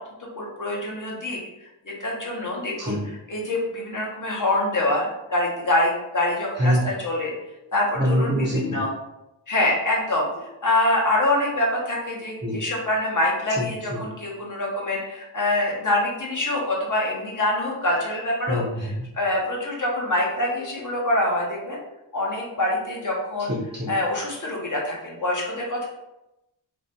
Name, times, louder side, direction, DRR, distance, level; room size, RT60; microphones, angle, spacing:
voice 1, 0.2-3.0 3.3-7.3 7.7-8.9 9.5-18.6 19.1-21.8 22.1-23.5 23.9-25.9, left 1 dB, 45° left, -3 dB, 0.8 m, -25 dB
voice 2, 6.6-6.9 7.9-8.8 12.4-12.6 13.5-14.0 18.5-19.1 23.5-23.9, equal, 25° right, -6 dB, 0.6 m, -25 dB
2.5 x 2.1 x 2.7 m, 0.93 s
wide cardioid pair, 50°, 45 cm